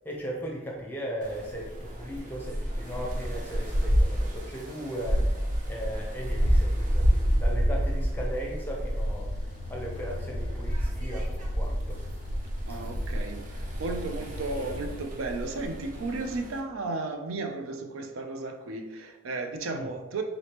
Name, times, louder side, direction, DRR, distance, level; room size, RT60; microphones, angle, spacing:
voice 1, 0.0-5.4 5.7-12.0 12.7-12.8 19.7-19.9, equal, 10° left, -2 dB, 0.6 m, -37 dB
sound 1, 1.2-16.6, equal, 40° right, 0.5 m, -29 dB
sound 2, 8.9-15.1, left 3 dB, 70° left, 0.4 m, -42 dB
voice 2, 12.7-20.2, right 3 dB, 85° right, 5 dB, 0.5 m, -34 dB
3.9 x 3.4 x 2.9 m, 1.1 s
head